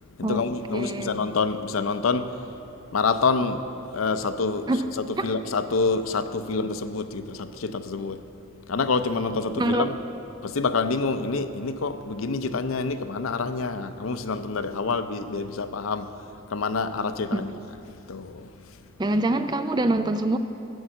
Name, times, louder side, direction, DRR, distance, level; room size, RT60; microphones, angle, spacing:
voice 1, 0.2-2.4 2.9-3.6 3.9-4.7 5.2-8.2 8.7-10.0 10.4-16.1 16.5-17.5 18.1-18.5, left 4 dB, 75° left, 10 dB, 0.6 m, -27 dB
voice 2, 0.7-1.1 4.7-4.9 5.2-5.3 9.6-9.9 17.3-17.4 19.0-20.4, right 2 dB, 20° right, 9 dB, 0.3 m, -24 dB
11.0 x 7.3 x 7.6 m, 3.0 s
head